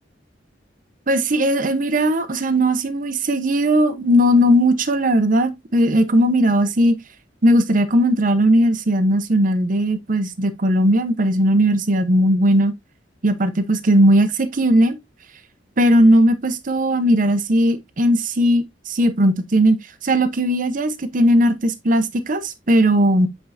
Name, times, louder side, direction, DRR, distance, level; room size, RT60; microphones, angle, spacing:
voice 1, 1.1-7.0 7.4-12.7 13.2-15.0 15.8-19.8 20.0-23.3, equal, 45° right, 0.8 m, -17 dB
7.9 x 4.6 x 2.6 m
head